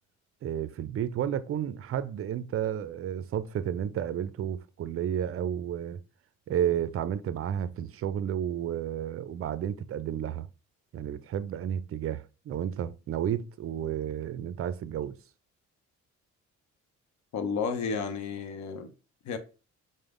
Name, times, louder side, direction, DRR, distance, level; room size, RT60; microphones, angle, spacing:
voice 1, 0.4-6.0 6.5-10.5 10.9-15.2, right 10 dB, 50° right, 0.5 m, -32 dB
voice 2, 17.3-18.9 19.2-19.4, left 5 dB, 65° left, 0.8 m, -32 dB
5.1 x 2.1 x 3.7 m
cardioid pair, 90°, 30 cm